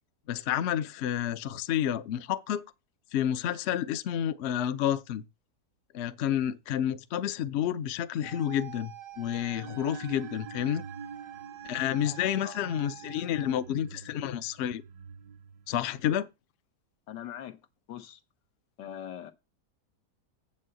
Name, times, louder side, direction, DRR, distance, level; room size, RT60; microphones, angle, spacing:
voice 1, 0.3-2.6 3.1-5.2 5.9-10.8 11.6-14.8 15.7-16.3, left 10 dB, 65° left, 0.7 m, -30 dB
sound 1, 8.2-13.6, right 9 dB, 50° right, 0.5 m, -48 dB
sound 2, 9.2-16.1, right 6 dB, 70° right, 1.1 m, -47 dB
voice 2, 12.0-12.6 17.1-17.6 17.9-18.2 18.8-19.3, left 10 dB, 90° left, 1.6 m, -42 dB
7.7 x 5.5 x 7.6 m
omnidirectional pair, 1.8 m